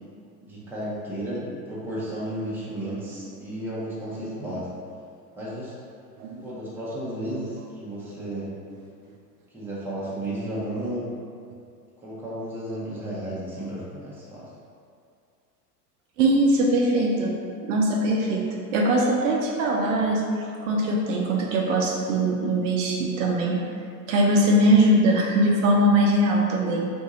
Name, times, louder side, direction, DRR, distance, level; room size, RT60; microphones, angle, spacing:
voice 1, 0.4-4.7 5.4-5.8 6.4-8.5 9.5-11.1 12.0-14.5, right 1 dB, 5° right, -8 dB, 0.6 m, -33 dB
voice 2, 16.2-17.3 17.7-18.4 18.7-23.6 24.1-26.9, right 1 dB, 50° right, -1 dB, 0.6 m, -21 dB
2.7 x 2.6 x 3.7 m, 2.3 s
figure-of-eight pair, 90°, 48 cm